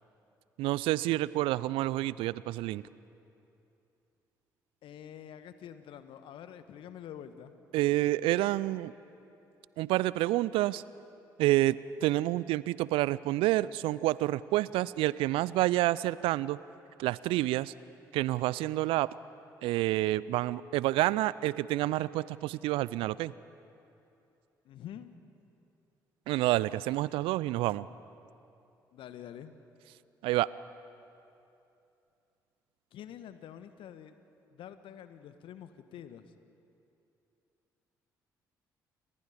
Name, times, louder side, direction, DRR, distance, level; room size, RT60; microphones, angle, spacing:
voice 1, 0.6-2.8 7.7-8.9 9.8-10.8 11.4-16.6 17.0-17.7 18.1-19.1 19.6-23.3 26.3-27.9 30.2-30.5, right 16 dB, 65° right, 20 dB, 0.5 m, -28 dB
voice 2, 4.8-7.5 24.6-25.1 28.9-29.5 32.9-34.1 34.5-36.4, left 10 dB, 60° left, 11 dB, 1.4 m, -47 dB
30.0 x 25.0 x 5.1 m, 2.8 s
figure-of-eight pair, 45°, 10 cm